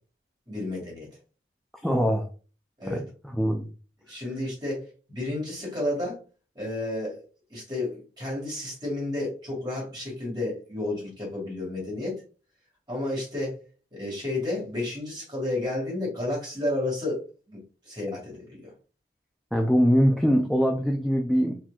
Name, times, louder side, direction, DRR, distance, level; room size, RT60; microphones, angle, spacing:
voice 1, 0.5-1.1 2.8-3.0 4.1-6.2 6.6-7.2 7.5-12.2 12.9-13.6 13.9-18.7, left 2 dB, 25° right, -4 dB, 2.0 m, -31 dB
voice 2, 1.8-2.3 2.9-3.0 3.3-3.7 19.5-21.6, equal, ahead, 1 dB, 0.4 m, -22 dB
4.3 x 4.2 x 2.3 m, 0.35 s
head